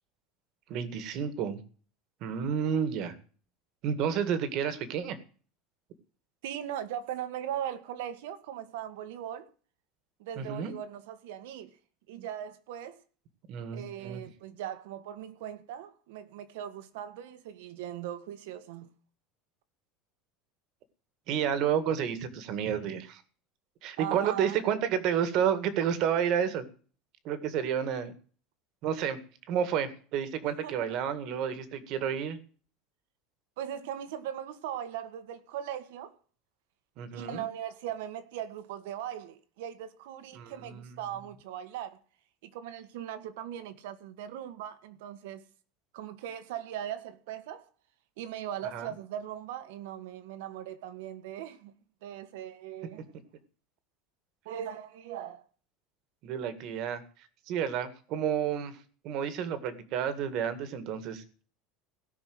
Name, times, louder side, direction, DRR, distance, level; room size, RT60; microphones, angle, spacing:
voice 1, 0.7-1.6 2.2-3.1 3.8-5.2 10.4-10.7 13.5-14.2 21.3-23.2 23.8-26.7 27.3-28.1 28.8-29.2 29.5-32.4 37.0-37.5 40.4-41.0 48.7-48.9 56.2-57.0 57.5-58.8 59.0-61.4, right 8 dB, 40° right, 1.8 m, -30 dB
voice 2, 6.4-9.5 10.2-11.7 12.1-13.0 13.7-18.9 24.0-24.6 30.6-30.9 33.6-36.1 37.1-42.0 42.4-45.4 45.9-47.7 48.2-51.7 52.0-53.1 54.4-55.4, right 10 dB, 75° right, 1.7 m, -39 dB
17.5 x 6.0 x 7.8 m
cardioid pair, 180°, 0 cm